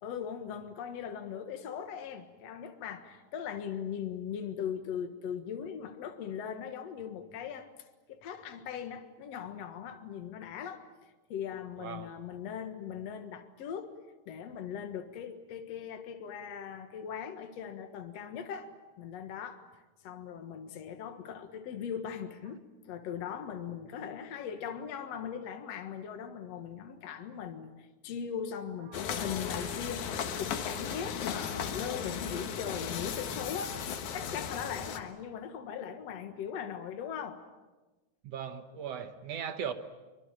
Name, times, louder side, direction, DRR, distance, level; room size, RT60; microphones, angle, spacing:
voice 1, 0.0-7.7 8.1-10.8 11.3-13.9 14.3-18.7 19.0-22.6 22.9-33.8 34.1-37.4, left 8 dB, 60° left, 7 dB, 2.6 m, -39 dB
voice 2, 11.8-12.1 28.9-29.0 38.2-39.7, right 7 dB, 65° right, 9 dB, 2.1 m, -38 dB
sound 1, 28.9-35.0, left 7 dB, 80° left, 3.0 m, -36 dB
24.0 x 23.5 x 9.1 m, 1.2 s
omnidirectional pair, 3.4 m